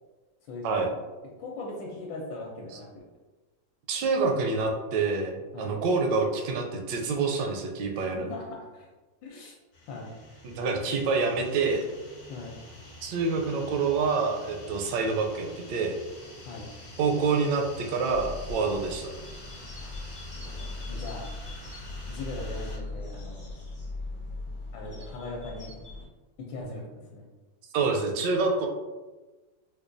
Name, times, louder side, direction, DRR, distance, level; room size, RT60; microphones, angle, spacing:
voice 1, 0.4-0.9 1.4-3.0 5.5-5.8 7.9-8.9 9.2-9.6 9.9-10.1 12.3-12.6 16.4-16.7 19.8-20.0 20.9-21.3 22.1-23.5 24.7-25.7 26.4-27.3, left 2 dB, 80° left, -2 dB, 1.2 m, -40 dB
voice 2, 3.9-8.3 10.4-11.9 13.0-15.9 17.0-19.1 27.7-28.7, right 4 dB, 75° right, 2 dB, 1.2 m, -27 dB
sound 1, 9.7-22.8, left 1 dB, 60° left, 0.9 m, -47 dB
sound 2, 18.1-26.0, left 2 dB, 35° left, 0.5 m, -39 dB
4.7 x 2.2 x 2.5 m, 1.2 s
omnidirectional pair, 2.0 m